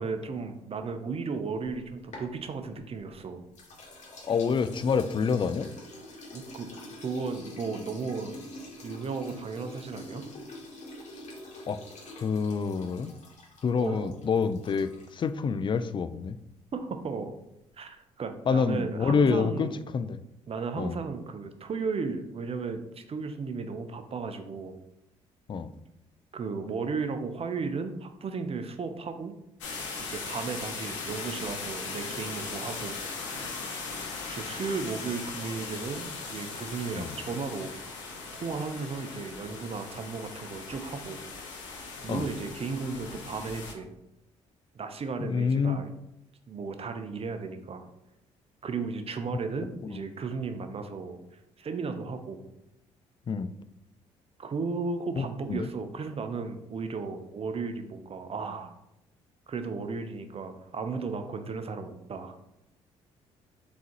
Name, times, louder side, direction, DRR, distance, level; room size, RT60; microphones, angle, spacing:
voice 1, 0.0-3.4 6.3-6.7 7.0-8.4 8.8-10.3 13.8-14.1 16.7-17.3 17.8-19.8 20.5-24.8 26.3-29.4 30.1-33.0 34.3-37.7 38.4-41.2 42.0-43.9 44.8-45.9 46.5-47.8 48.6-51.2 51.6-52.4 54.4-58.7 59.5-62.3, right 4 dB, 40° right, 8 dB, 0.6 m, -35 dB
sound 1, 1.8-3.1 3.5-15.3, left 1 dB, 50° left, 1.5 m, -46 dB
voice 2, 4.3-5.7 11.7-11.8 12.2-13.1 13.6-16.4 18.5-20.2 20.8-21.0 25.5-25.7 37.0-37.1 42.1-42.2 45.2-45.8 49.9-50.0 53.3-53.5 55.2-55.7, left 5 dB, 30° left, 13 dB, 0.3 m, -27 dB
sound 2, 29.6-43.7, left 4 dB, 90° left, 0.7 m, -39 dB
4.0 x 3.7 x 3.0 m, 0.84 s
hypercardioid pair, 50°, 15 cm